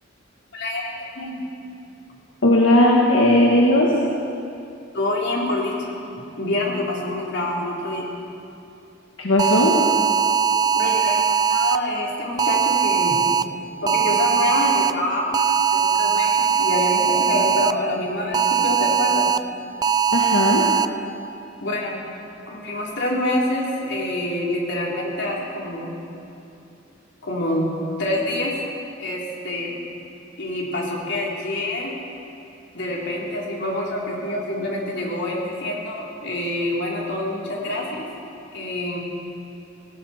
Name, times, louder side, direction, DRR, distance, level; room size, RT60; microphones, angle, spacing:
voice 1, 0.5-1.3 4.9-5.9 6.4-8.1 10.7-11.2 11.5-13.2 13.8-15.4 15.7-19.3 21.6-22.0 22.5-25.9 27.2-27.7 28.0-28.5 29.0-29.8 30.4-31.9 32.7-38.1 38.5-39.0, left 1 dB, 60° left, -3 dB, 3.4 m, -26 dB
voice 2, 2.4-3.9 9.2-9.7 20.1-20.6, left 1 dB, 85° left, -3 dB, 1.6 m, -16 dB
sound 1, 9.4-11.8 12.4-13.4 13.9-14.9 15.3-17.7 18.3-19.4 19.8-20.8, right 7 dB, 20° right, 0.3 m, -20 dB
18.5 x 17.5 x 4.3 m, 2.7 s
head